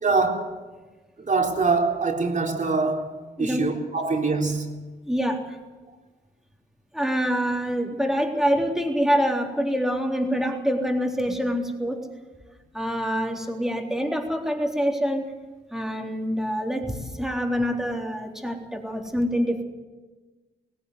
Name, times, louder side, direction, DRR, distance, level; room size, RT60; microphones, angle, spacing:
voice 1, 0.0-0.4 1.3-3.1 3.4-4.7 16.6-16.7, right 4 dB, 45° right, 1 dB, 3.7 m, -24 dB
voice 2, 5.1-5.6 6.9-12.0 12.7-15.3 15.7-19.6, equal, ahead, 2 dB, 3.7 m, -25 dB
18.0 x 16.0 x 9.7 m, 1.3 s
cardioid pair, 60°, 19 cm